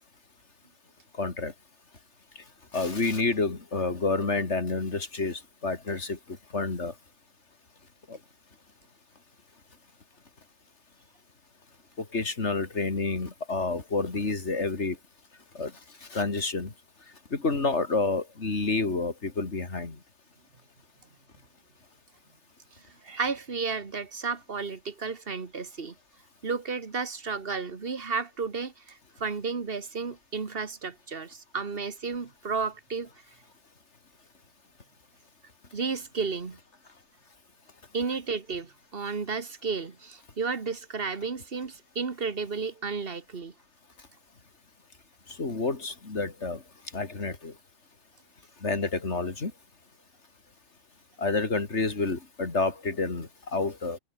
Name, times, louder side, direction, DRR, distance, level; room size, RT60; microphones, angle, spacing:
voice 1, 1.2-1.5 2.7-6.2 6.5-6.9 8.1-8.2 12.0-15.0 15.5-15.7 16.1-16.7 17.3-20.0 45.4-46.6 46.9-47.5 48.6-49.5 51.2-54.0, left 3 dB, 55° left, 3.2 m, -29 dB
voice 2, 22.7-26.0 26.4-33.1 35.7-36.6 37.9-43.5, right 5 dB, 45° right, 1.9 m, -33 dB
omnidirectional pair, 1.4 m